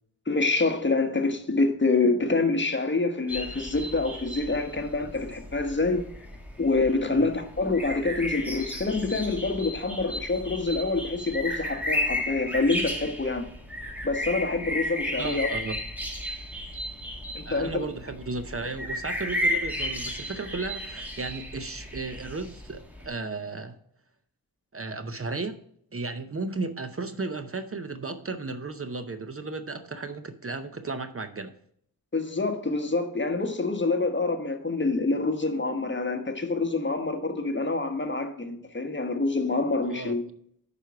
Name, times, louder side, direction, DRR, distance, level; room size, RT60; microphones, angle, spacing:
voice 1, 0.3-6.0 6.6-13.5 14.0-15.5 17.3-17.7 32.1-40.2, left 3 dB, 30° left, 1.2 m, -26 dB
sound 1, 3.3-23.1, left 1 dB, 5° right, 1.7 m, -34 dB
voice 2, 15.2-15.8 17.5-23.8 24.7-25.6 25.9-31.5 39.9-40.2, right 3 dB, 40° right, 0.7 m, -34 dB
9.2 x 5.2 x 4.6 m
wide cardioid pair, 90°, 36 cm